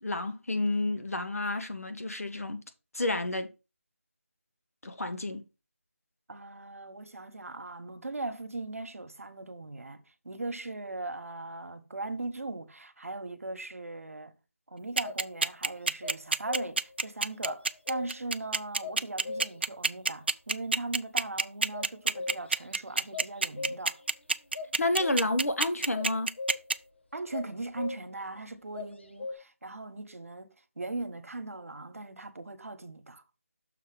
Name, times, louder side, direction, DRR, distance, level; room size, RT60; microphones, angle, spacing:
voice 1, 0.0-2.6 2.9-3.5 4.8-5.4 24.8-26.3, left 2 dB, 80° left, 1.5 m, -30 dB
voice 2, 6.3-14.4 14.7-24.0 27.1-33.2, right 2 dB, 75° right, 1.2 m, -39 dB
sound 1, 15.0-15.3 16.0-17.0 17.4-18.4 18.8-19.7 21.7-22.7 23.0-24.1 24.5-25.5 25.9-26.8 27.3-28.3 28.7-29.3, left 3 dB, 50° left, 1.1 m, -39 dB
sound 2, 15.0-26.7, right 3 dB, 45° right, 0.4 m, -27 dB
6.6 x 4.2 x 5.0 m
figure-of-eight pair, 175°, 8 cm